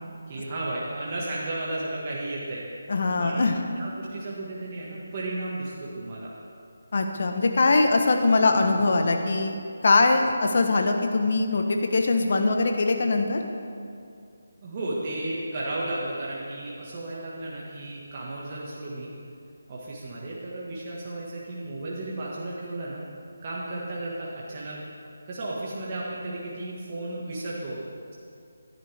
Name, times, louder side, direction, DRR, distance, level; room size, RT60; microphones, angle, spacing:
voice 1, 0.3-2.6 3.2-3.4 3.8-6.3 14.6-19.1 19.7-23.0 23.4-24.8 25.3-27.8, right 2 dB, 35° right, -5 dB, 1.7 m, -34 dB
voice 2, 2.9-3.6 6.9-9.5 9.8-13.4, left 3 dB, 55° left, 4 dB, 1.2 m, -22 dB
13.0 x 10.5 x 3.6 m, 2.4 s
figure-of-eight pair, 160°, 0 cm